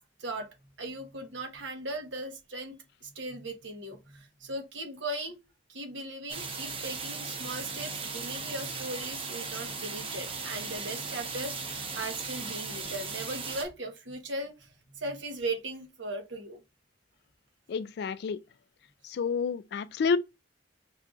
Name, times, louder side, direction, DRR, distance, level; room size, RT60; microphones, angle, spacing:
voice 1, 0.8-2.7 3.0-5.4 5.7-14.7 15.0-16.6, right 2 dB, 75° right, 1.0 m, -38 dB
sound 1, 6.3-13.6, right 4 dB, 30° right, 0.7 m, -37 dB
voice 2, 17.7-18.4 19.0-20.2, left 5 dB, 60° left, 0.3 m, -29 dB
5.5 x 2.5 x 2.4 m
head